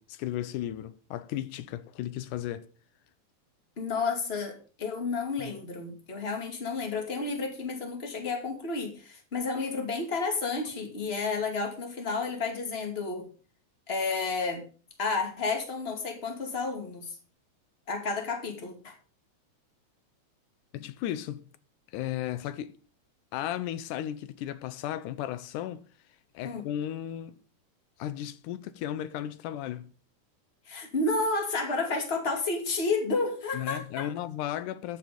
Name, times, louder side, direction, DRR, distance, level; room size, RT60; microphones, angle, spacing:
voice 1, 0.0-2.7 5.4-5.5 20.7-21.5 21.9-22.8 23.3-25.9 26.3-27.4 28.0-29.9 33.5-35.0, left 12 dB, 85° left, 2.2 m, -35 dB
voice 2, 3.8-13.3 13.9-14.6 15.0-17.2 17.9-18.9 26.4-26.7 30.7-34.1, left 3 dB, 20° left, 2.2 m, -31 dB
13.5 x 7.3 x 5.1 m
omnidirectional pair, 3.6 m